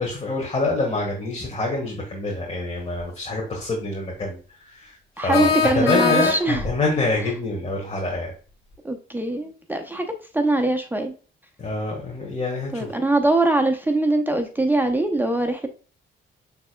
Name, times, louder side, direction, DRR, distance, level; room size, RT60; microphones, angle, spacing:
voice 1, 0.0-8.3 11.6-12.9, left 2 dB, 30° left, -3 dB, 1.6 m, -26 dB
sound 1, 3.0-3.1 5.3-6.7, left 5 dB, 85° left, 1.9 m, -22 dB
voice 2, 5.2-6.6 8.8-11.1 12.7-15.7, right 2 dB, 10° right, 5 dB, 0.7 m, -22 dB
6.6 x 3.4 x 2.3 m, 0.38 s
cardioid pair, 90°, 20 cm